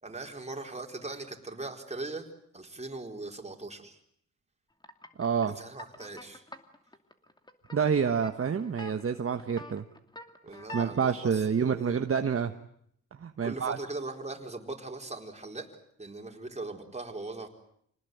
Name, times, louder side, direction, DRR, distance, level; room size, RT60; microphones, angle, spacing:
voice 1, 0.0-2.3 2.5-4.0 5.4-6.4 10.4-12.0 13.4-15.7 16.0-17.5, right 2 dB, 20° right, 2 dB, 4.5 m, -40 dB
sound 1, 4.8-10.9, equal, 15° left, 2.6 m, -44 dB
voice 2, 5.2-5.6 7.7-9.8 10.7-12.5 13.2-13.8, right 6 dB, 45° right, 7 dB, 1.4 m, -28 dB
27.0 x 19.5 x 9.4 m, 0.70 s
cardioid pair, 75°, 31 cm